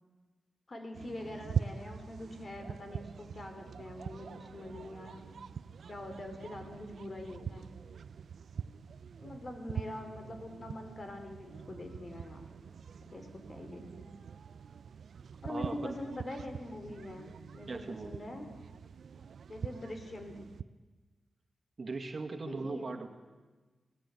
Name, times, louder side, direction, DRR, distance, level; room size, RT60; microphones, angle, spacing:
voice 1, 0.7-5.3 5.9-7.7 9.2-12.5 13.0-14.1 15.4-18.5 19.5-20.5 22.5-22.9, left 1 dB, 40° left, 5 dB, 3.8 m, -44 dB
sound 1, 0.9-20.6, right 7 dB, 75° right, 0.6 m, -43 dB
voice 2, 15.5-16.0 17.7-18.2 21.8-23.1, right 3 dB, 45° right, 5 dB, 2.1 m, -39 dB
27.5 x 18.0 x 8.5 m, 1.3 s
wide cardioid pair, 110°, 0 cm